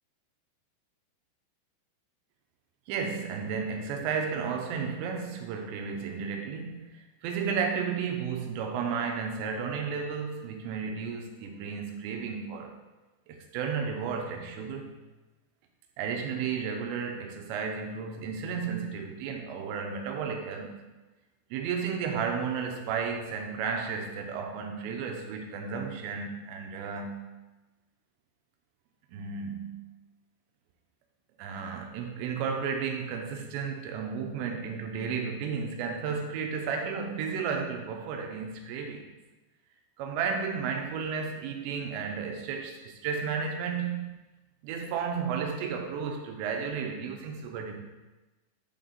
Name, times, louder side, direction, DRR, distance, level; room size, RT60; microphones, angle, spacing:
voice 1, 2.9-12.8 13.3-14.9 16.0-20.7 21.5-27.3 29.1-29.8 31.4-39.1 40.0-44.2 44.6-47.8, right 6 dB, 80° right, 3 dB, 2.8 m, -33 dB
10.0 x 4.1 x 4.0 m, 1.1 s
omnidirectional pair, 5.5 m